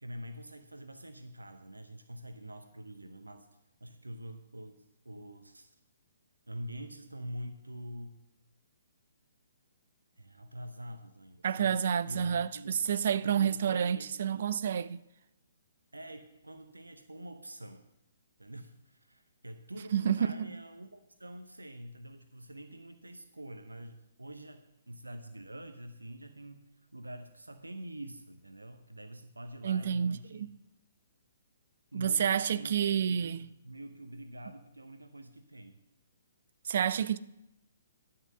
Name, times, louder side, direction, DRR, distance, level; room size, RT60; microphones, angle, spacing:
voice 1, 0.0-3.5 3.8-5.8 6.5-8.2 10.2-12.8 13.1-14.1 15.9-17.9 18.4-30.5 31.9-35.8, right 1 dB, 80° right, 0.7 m, -46 dB
voice 2, 11.4-15.0 19.9-20.5 29.6-30.5 31.9-33.5 36.6-37.2, right 8 dB, 50° right, 0.4 m, -29 dB
11.0 x 5.6 x 6.3 m
figure-of-eight pair, 125°, 0 cm